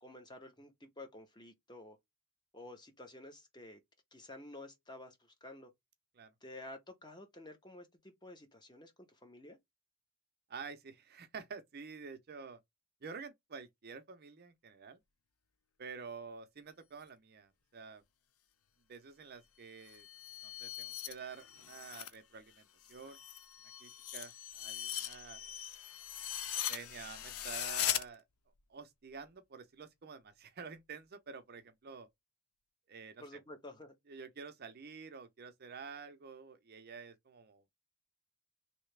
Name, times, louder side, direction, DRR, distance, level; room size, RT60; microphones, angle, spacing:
voice 1, 0.0-2.0 2.5-3.8 4.1-5.7 6.4-9.6 33.2-33.9, left 1 dB, 20° left, 0.8 m, -51 dB
voice 2, 10.5-12.6 13.0-15.0 15.8-18.0 18.9-20.1 20.4-23.2 23.8-25.5 26.5-28.2 28.7-32.1 32.9-33.4 34.1-37.6, right 5 dB, 45° right, 0.5 m, -49 dB
sound 1, 19.8-22.2 22.5-28.0, left 11 dB, 80° left, 0.5 m, -40 dB
3.2 x 2.8 x 3.2 m
head